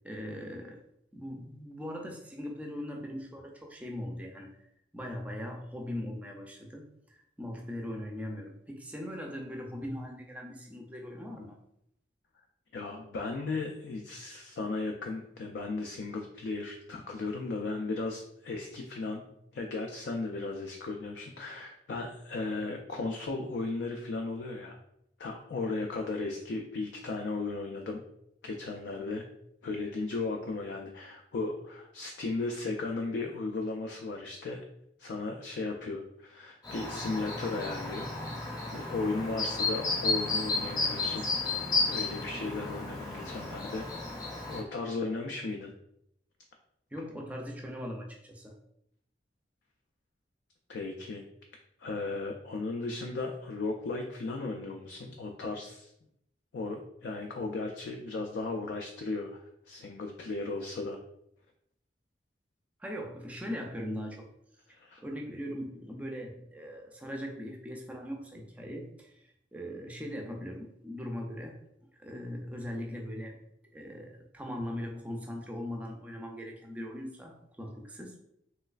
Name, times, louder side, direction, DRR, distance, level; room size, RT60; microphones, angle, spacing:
voice 1, 0.0-0.8 1.1-4.5 4.9-11.6 46.9-48.5 62.8-64.3 64.7-71.6 72.0-73.4 73.7-78.2, equal, 10° right, 1 dB, 0.4 m, -40 dB
voice 2, 12.7-19.2 19.5-24.8 25.2-28.0 28.4-29.2 29.6-34.6 35.0-38.1 38.7-44.0 44.4-45.7 50.7-51.2 51.8-55.9 56.5-61.0 64.7-65.0, left 3 dB, 70° left, 3 dB, 0.3 m, -36 dB
Chirp tweet, 36.6-44.6, left 3 dB, 20° left, 0.7 m, -33 dB
3.1 x 3.0 x 2.4 m, 0.76 s
head